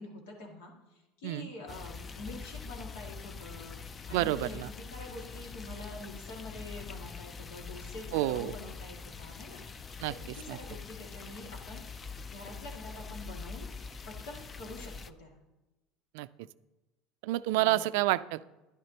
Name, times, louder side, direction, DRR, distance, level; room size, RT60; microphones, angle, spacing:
voice 1, 0.0-9.6 10.1-11.8 12.3-13.7 14.1-15.4 17.5-17.9, left 2 dB, 90° left, 0 dB, 2.2 m, -46 dB
sound 1, 1.7-15.1, left 5 dB, 25° left, 0.4 m, -44 dB
voice 2, 4.1-4.7 8.1-8.5 10.0-10.1 10.5-10.6 16.1-16.5 17.2-18.4, right 17 dB, 80° right, 16 dB, 0.3 m, -29 dB
11.5 x 10.5 x 2.9 m, 1.1 s
supercardioid pair, 120°, 0 cm